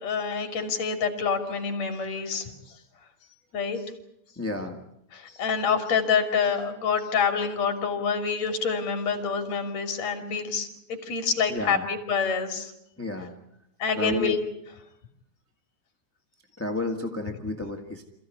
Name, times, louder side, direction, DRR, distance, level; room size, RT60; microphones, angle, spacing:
voice 1, 0.0-2.8 3.5-3.8 5.1-12.7 13.8-14.4, left 6 dB, 55° left, 6 dB, 3.9 m, -27 dB
voice 2, 4.3-4.8 11.5-11.9 13.0-13.4 13.9-14.3 16.6-18.0, left 2 dB, 10° left, 4 dB, 1.0 m, -31 dB
27.5 x 16.0 x 9.7 m, 0.80 s
omnidirectional pair, 3.9 m